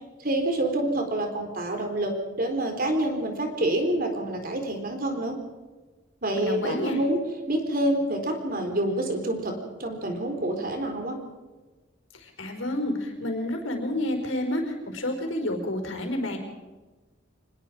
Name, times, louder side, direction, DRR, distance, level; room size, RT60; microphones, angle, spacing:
voice 1, 0.2-2.1 2.4-5.4 6.2-7.2 7.5-9.5 9.8-11.2, right 1 dB, 50° right, 4 dB, 4.0 m, -27 dB
voice 2, 6.3-7.0 12.2-16.4, left 1 dB, 80° left, 4 dB, 4.9 m, -29 dB
25.5 x 20.5 x 5.2 m, 1.2 s
head